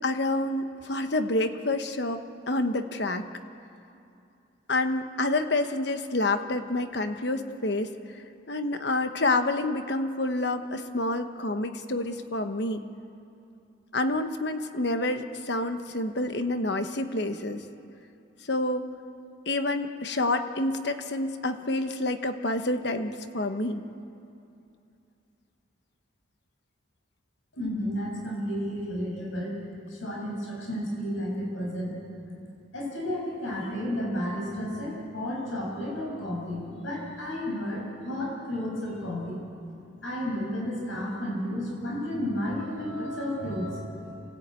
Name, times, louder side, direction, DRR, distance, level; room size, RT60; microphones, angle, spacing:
voice 1, 0.0-3.3 4.7-12.8 13.9-17.6 18.5-18.9 19.5-23.8, left 2 dB, 60° left, 8 dB, 1.1 m, -28 dB
voice 2, 27.5-29.5 29.9-32.0 32.7-39.4 40.0-44.1, equal, 85° left, -2 dB, 7.4 m, -32 dB
26.5 x 17.0 x 9.0 m, 2.7 s
head